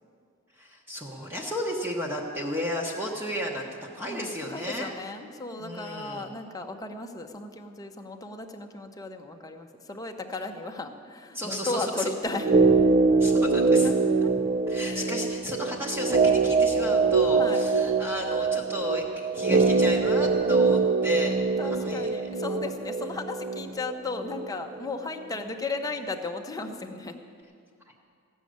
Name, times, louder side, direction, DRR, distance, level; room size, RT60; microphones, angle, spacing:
voice 1, 0.5-4.9 5.6-6.3 11.3-12.1 13.2-13.9 14.7-21.3 21.6-22.1, left 1 dB, 10° right, -3 dB, 1.0 m, -33 dB
voice 2, 4.0-12.5 13.8-14.0 14.8-15.2 17.3-17.6 21.6-27.2, left 3 dB, 15° left, 4 dB, 0.8 m, -35 dB
sound 1, 12.4-24.5 24.8-24.9, right 4 dB, 35° right, 0.5 m, -23 dB
15.0 x 6.4 x 9.3 m, 2.2 s
head